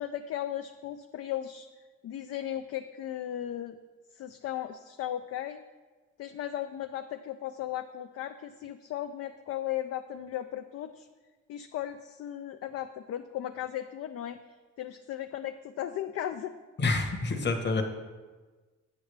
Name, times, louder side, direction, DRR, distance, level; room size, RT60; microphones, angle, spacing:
voice 1, 0.0-1.7 2.0-3.8 4.1-5.6 6.2-11.1 11.5-14.4 14.8-16.5, left 11 dB, 55° left, 8 dB, 0.4 m, -36 dB
voice 2, 16.8-17.8, left 3 dB, 35° left, 4 dB, 1.1 m, -27 dB
8.1 x 7.7 x 3.3 m, 1.3 s
cardioid pair, 90°, 30 cm